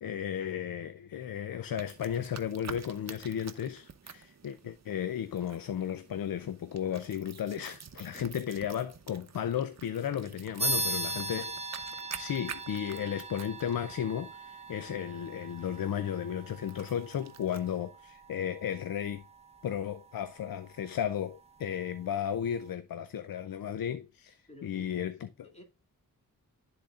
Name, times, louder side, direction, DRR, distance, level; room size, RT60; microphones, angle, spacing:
voice 1, 0.0-11.5 12.1-19.2 19.6-25.5, left 9 dB, 75° left, 0.5 m, -34 dB
sound 1, 1.8-17.8, right 6 dB, 50° right, 0.8 m, -49 dB
sound 2, 10.6-20.6, right 2 dB, 20° right, 0.9 m, -39 dB
voice 2, 10.7-11.1 12.8-13.2 24.5-24.9 25.2-25.6, left 1 dB, 20° left, 2.3 m, -52 dB
12.0 x 4.0 x 2.4 m
cardioid pair, 65°, 34 cm